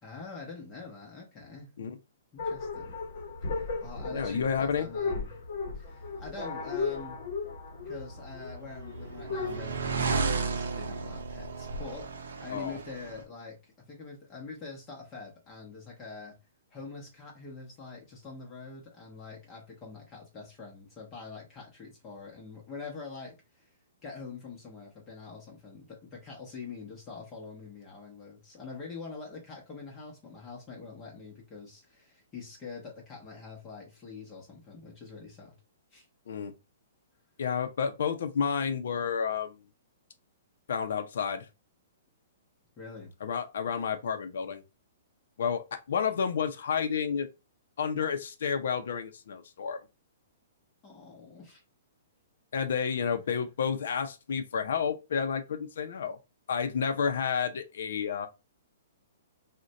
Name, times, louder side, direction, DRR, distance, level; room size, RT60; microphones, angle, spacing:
voice 1, 0.0-1.7 2.3-3.0 3.5-5.4 5.7-7.3 7.9-12.1 12.4-16.4 16.7-23.7 24.0-35.5 35.9-36.1 42.8-43.1 50.8-51.6, left 4 dB, 25° left, 0.8 m, -45 dB
sound 1, 2.4-9.6, left 4 dB, 55° left, 0.8 m, -36 dB
voice 2, 4.1-4.9 12.5-12.8 36.3-36.5 37.4-39.6 40.7-41.5 43.2-44.6 45.4-47.3 47.8-49.8 52.5-56.2 56.5-58.3, left 6 dB, 70° left, 0.5 m, -30 dB
sound 2, 8.3-13.2, right 4 dB, 80° right, 0.5 m, -33 dB
2.4 x 2.1 x 3.9 m
hypercardioid pair, 150°, 0 cm